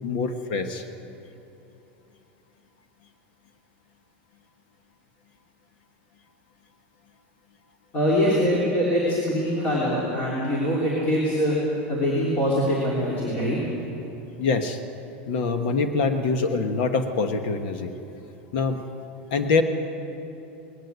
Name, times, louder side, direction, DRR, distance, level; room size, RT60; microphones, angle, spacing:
voice 1, 0.0-0.8 14.4-14.8 15.3-17.9 18.5-18.8 19.3-19.6, left 4 dB, 55° left, 7 dB, 1.3 m, -24 dB
voice 2, 7.9-11.6 11.9-13.6, equal, 25° left, -5 dB, 3.3 m, -23 dB
19.5 x 17.5 x 8.1 m, 2.9 s
supercardioid pair, 175°, 6 cm